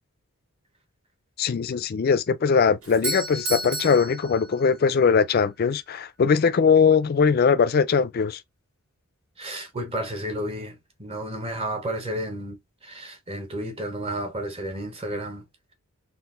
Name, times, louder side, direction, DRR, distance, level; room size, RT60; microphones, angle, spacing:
voice 1, 1.4-8.4, left 6 dB, 45° left, 0.3 m, -21 dB
Doorbell, 2.8-5.0, right 2 dB, 70° right, 1.7 m, -32 dB
voice 2, 9.4-15.4, right 1 dB, 25° right, 0.8 m, -32 dB
3.8 x 2.5 x 2.4 m
head